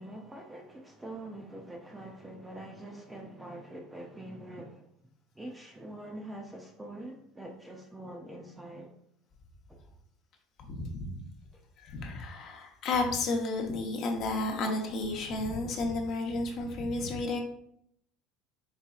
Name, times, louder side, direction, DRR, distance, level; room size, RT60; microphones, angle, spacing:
voice 1, 0.0-4.9 5.3-8.9 9.7-9.8 11.5-11.6, right 1 dB, 5° right, 1 dB, 0.5 m, -44 dB
voice 2, 10.6-11.2 11.8-17.4, left 2 dB, 45° left, 2 dB, 0.7 m, -32 dB
4.2 x 3.8 x 2.3 m, 0.71 s
cardioid pair, 150°, 0 cm